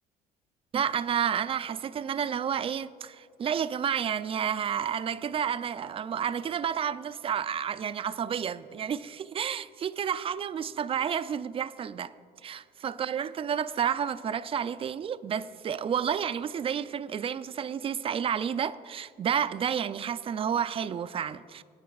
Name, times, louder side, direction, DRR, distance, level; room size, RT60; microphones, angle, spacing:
voice 1, 0.7-12.1 12.4-21.6, right 8 dB, 35° right, 0.3 m, -30 dB
23.0 x 9.4 x 2.3 m
cardioid pair, 110°, 17 cm